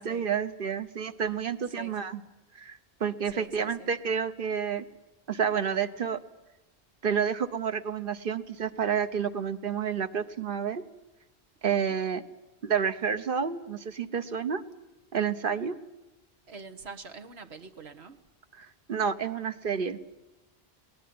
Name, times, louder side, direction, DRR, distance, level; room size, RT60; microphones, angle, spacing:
voice 1, 0.0-2.2 2.5-4.8 5.3-6.2 7.0-10.8 11.6-12.2 12.6-14.6 15.1-15.7 18.6-20.0, right 7 dB, 60° right, 11 dB, 1.2 m, -29 dB
voice 2, 3.3-3.9 16.5-18.2, right 3 dB, 90° right, 7 dB, 1.5 m, -45 dB
21.0 x 19.0 x 9.5 m, 1.0 s
omnidirectional pair, 1.0 m